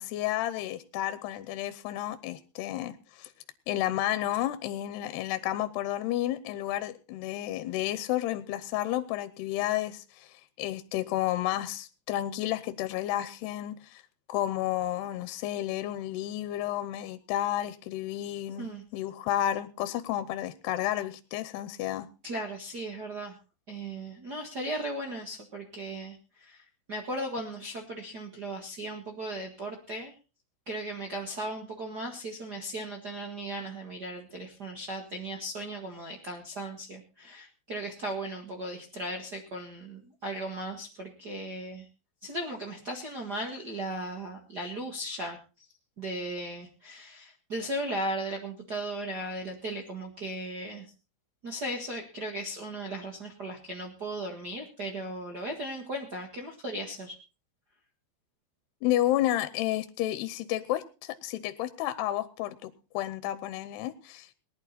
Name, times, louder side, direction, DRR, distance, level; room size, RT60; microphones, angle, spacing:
voice 1, 0.0-3.3 3.7-10.3 10.6-14.0 14.3-22.1 58.8-64.3, left 13 dB, 80° left, 13 dB, 2.8 m, -31 dB
voice 2, 22.2-23.3 23.7-30.1 30.7-41.9 42.2-45.4 46.0-50.9 51.4-57.1, right 1 dB, 75° right, -1 dB, 0.9 m, -37 dB
19.0 x 11.5 x 4.1 m, 0.33 s
omnidirectional pair, 5.0 m